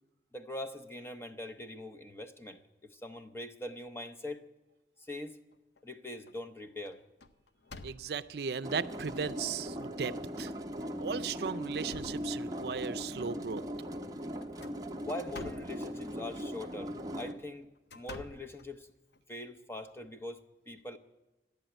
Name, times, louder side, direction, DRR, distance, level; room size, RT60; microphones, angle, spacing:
voice 1, 0.3-4.4 5.0-5.4 5.8-7.0 15.0-18.9 19.3-21.0, left 1 dB, 15° left, 7 dB, 0.7 m, -42 dB
sound 1, 5.2-5.8 6.3-6.5 6.9-8.4 9.1-9.2 9.7-9.8 10.7-10.9 11.4-12.9 14.4-15.8 17.0-19.2, left 2 dB, 75° left, 0.8 m, -51 dB
voice 2, 7.8-10.5 11.0-13.6, right 6 dB, 65° right, 11 dB, 0.5 m, -36 dB
sound 2, 8.6-17.3, equal, 20° right, 0.8 m, -39 dB
13.0 x 10.5 x 9.0 m, 1.1 s
head